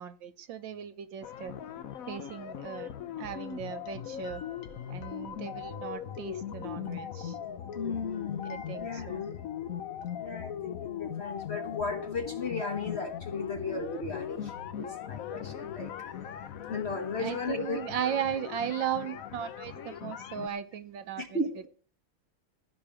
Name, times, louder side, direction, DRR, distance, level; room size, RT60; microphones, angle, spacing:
voice 1, 0.0-1.5 2.1-2.9 3.2-4.4 4.9-7.4 8.4-9.2 17.2-21.4, right 9 dB, 70° right, 11 dB, 1.5 m, -36 dB
sound 1, 1.2-20.5, left 9 dB, 60° left, 0.9 m, -39 dB
sound 2, 3.3-10.3, left 1 dB, 80° left, 2.4 m, -53 dB
voice 2, 7.7-9.3 10.2-18.1 21.2-21.5, left 3 dB, 40° left, 6 dB, 1.2 m, -36 dB
15.5 x 5.3 x 8.7 m, 0.42 s
omnidirectional pair, 2.3 m